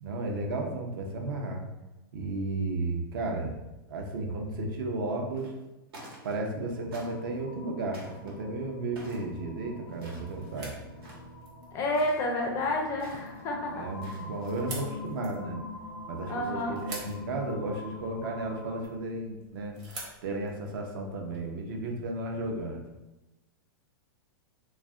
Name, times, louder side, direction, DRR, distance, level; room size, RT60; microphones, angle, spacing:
voice 1, 0.0-1.6 2.1-3.6 3.9-5.5 6.2-10.7 13.7-15.6 16.1-19.7 20.2-22.8, right 2 dB, 65° right, 1 dB, 0.6 m, -34 dB
sound 1, 5.3-5.6 5.9-6.6 6.9-7.4 7.9-8.3 9.0-9.3 9.9-10.6 10.9-11.3 11.9-12.2 13.0-13.4 13.9-14.5, right 1 dB, 85° right, 1.1 m, -49 dB
sound 2, 6.7-18.9, left 2 dB, 85° left, 0.4 m, -44 dB
sound 3, 8.5-21.4, right 2 dB, 35° right, 0.8 m, -49 dB
voice 2, 11.7-13.8 16.3-16.8, left 1 dB, 25° left, 1 dB, 0.4 m, -30 dB
2.4 x 2.1 x 3.5 m, 0.99 s
supercardioid pair, 150°, 12 cm